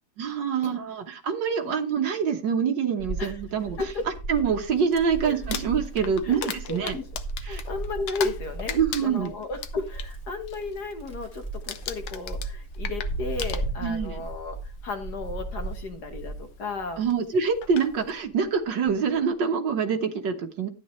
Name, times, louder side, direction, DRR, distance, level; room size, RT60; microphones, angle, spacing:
voice 1, 0.2-3.8 4.3-7.0 7.4-7.6 8.7-9.3 13.8-14.2 17.0-20.7, right 6 dB, 60° right, 6 dB, 1.7 m, -25 dB
Wind, 3.0-17.1 17.5-19.0, right 2 dB, 15° left, 1.9 m, -36 dB
Crumpling crinkling, 5.3-8.4 8.7-10.1 10.5-10.8 11.1-11.4 11.7-14.1 15.0-15.1 17.1-17.2 17.6-17.9, left 9 dB, 80° left, 1.8 m, -36 dB
voice 2, 6.7-7.1 7.4-17.1, left 3 dB, 50° left, 6 dB, 1.6 m, -34 dB
12.5 x 9.3 x 3.1 m, 0.29 s
omnidirectional pair, 2.4 m